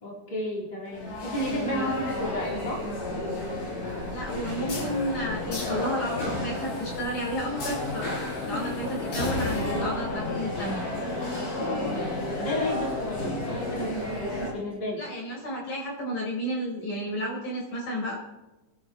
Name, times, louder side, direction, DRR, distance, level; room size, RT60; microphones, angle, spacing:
voice 1, 0.0-2.8 11.7-13.9 14.5-15.0, left 1 dB, 10° left, -5 dB, 3.3 m, -32 dB
sound 1, 0.9-14.5, left 2 dB, 65° left, 6.1 m, -31 dB
voice 2, 4.1-10.9 15.0-18.2, equal, 50° left, -4 dB, 6.4 m, -32 dB
sound 2, 4.5-10.9, left 3 dB, 90° left, 8.1 m, -42 dB
27.0 x 12.0 x 3.2 m, 1.0 s
omnidirectional pair, 4.2 m